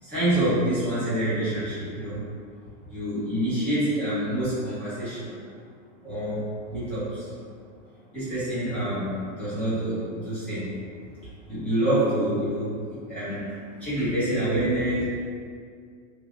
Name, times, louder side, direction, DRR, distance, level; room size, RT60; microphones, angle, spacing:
voice 1, 0.0-2.3 2.7-5.4 6.0-7.3 8.1-10.7 11.5-15.0, right 1 dB, 5° left, -14 dB, 0.5 m, -27 dB
3.3 x 2.4 x 3.5 m, 2.2 s
supercardioid pair, 180°, 40 cm